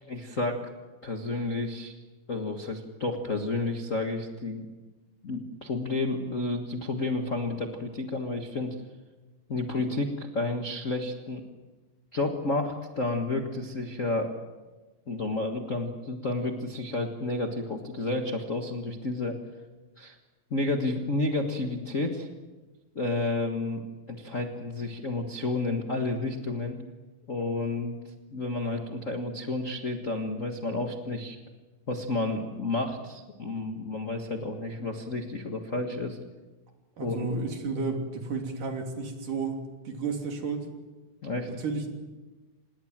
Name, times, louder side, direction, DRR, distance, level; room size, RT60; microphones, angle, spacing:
voice 1, 0.0-0.6 1.0-1.9 2.3-4.7 5.2-8.7 9.5-11.4 12.1-14.3 15.1-19.4 20.0-20.1 20.5-22.3 22.9-26.8 27.3-27.9 28.3-31.4 31.9-36.2 37.0-37.3 41.2-41.5, left 2 dB, 40° left, 4 dB, 1.1 m, -31 dB
voice 2, 37.0-40.7 41.5-41.9, right 4 dB, 65° right, 3 dB, 4.5 m, -32 dB
27.5 x 20.0 x 7.5 m, 1.2 s
omnidirectional pair, 4.0 m